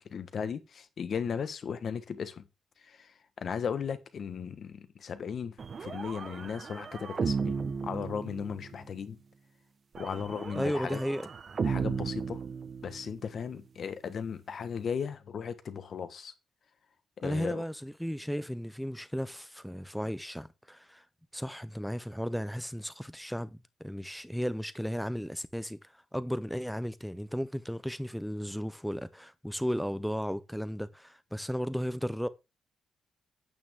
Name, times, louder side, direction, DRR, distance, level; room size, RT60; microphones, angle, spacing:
voice 1, 0.1-2.4 2.8-9.2 10.0-11.0 11.6-12.4 12.8-16.3 17.2-17.6, left 7 dB, 50° left, 1.3 m, -36 dB
sound 1, 5.6-8.8 10.0-13.2, right 5 dB, 40° right, 1.0 m, -35 dB
voice 2, 10.5-11.3 17.2-21.0 21.3-25.8 26.1-32.3, equal, ahead, 0.7 m, -34 dB
9.1 x 8.7 x 3.7 m
cardioid pair, 130°, 0 cm